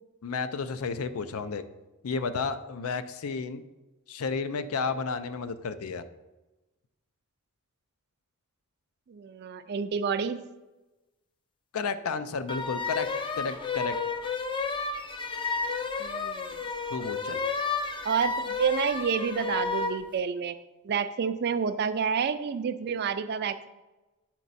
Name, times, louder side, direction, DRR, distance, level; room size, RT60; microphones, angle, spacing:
voice 1, 0.2-1.6 2.0-3.6 4.1-6.0 11.7-13.1 13.4-14.0 16.9-17.4, left 5 dB, 85° left, 11 dB, 0.5 m, -32 dB
voice 2, 9.1-10.4 16.0-16.6 18.0-20.6 20.8-23.7, right 6 dB, 50° right, 12 dB, 0.4 m, -29 dB
sound 1, 12.5-20.0, left 4 dB, 25° left, 0.4 m, -31 dB
8.3 x 4.5 x 4.0 m, 1.1 s
head